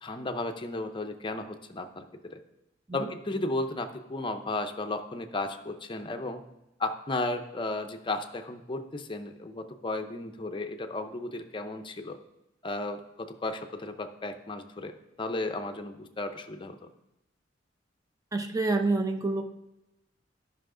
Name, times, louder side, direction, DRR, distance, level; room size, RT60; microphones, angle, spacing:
voice 1, 0.0-2.4 2.9-6.4 6.8-12.2 12.6-16.9, left 2 dB, 25° left, 6 dB, 0.6 m, -34 dB
voice 2, 18.3-19.5, right 3 dB, 20° right, 5 dB, 0.7 m, -27 dB
11.5 x 5.6 x 3.8 m, 0.91 s
head